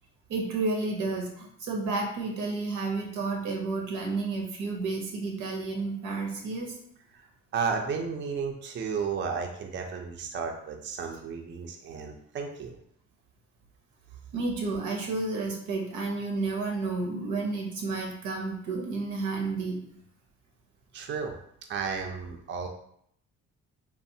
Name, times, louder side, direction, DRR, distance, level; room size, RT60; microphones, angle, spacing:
voice 1, 0.3-6.8 14.3-19.8, right 3 dB, 90° right, 1 dB, 0.8 m, -31 dB
voice 2, 7.5-12.8 20.9-21.3 21.7-22.7, right 5 dB, 40° right, 2 dB, 0.4 m, -33 dB
3.1 x 2.1 x 2.6 m, 0.69 s
cardioid pair, 90°, 30 cm